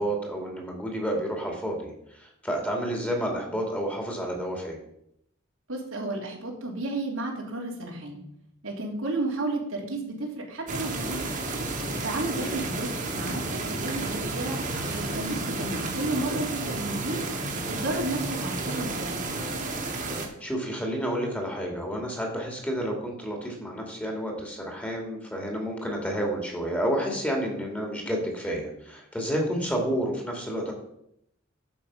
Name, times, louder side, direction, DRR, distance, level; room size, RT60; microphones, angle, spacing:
voice 1, 0.0-4.8 12.3-12.6 16.8-17.1 20.4-30.7, equal, 10° left, 1 dB, 2.4 m, -30 dB
voice 2, 5.7-8.2 8.6-11.3 12.0-12.9 13.1-17.2 17.6-19.3, right 2 dB, 90° right, -1 dB, 3.1 m, -32 dB
sound 1, 10.7-20.3, right 2 dB, 40° right, 2.0 m, -31 dB
Motorcycle / Engine, 11.7-18.7, right 1 dB, 70° right, 2.6 m, -46 dB
11.0 x 7.2 x 5.5 m, 0.77 s
head